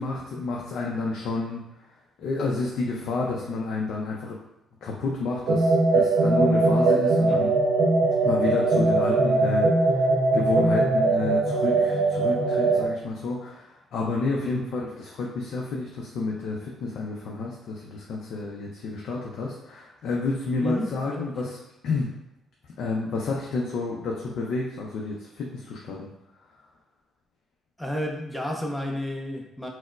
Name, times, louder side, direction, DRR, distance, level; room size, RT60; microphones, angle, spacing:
voice 1, 0.0-1.9 2.2-4.4 4.8-7.5 8.2-21.6 21.8-22.1 22.8-26.1, left 3 dB, 75° left, -2 dB, 0.5 m, -30 dB
sound 1, 5.5-12.9, right 2 dB, 90° right, 0.7 m, -21 dB
voice 2, 20.6-21.5 27.8-29.7, left 1 dB, 10° left, 1 dB, 0.4 m, -32 dB
4.1 x 2.0 x 2.4 m, 0.86 s
cardioid pair, 90°, 0 cm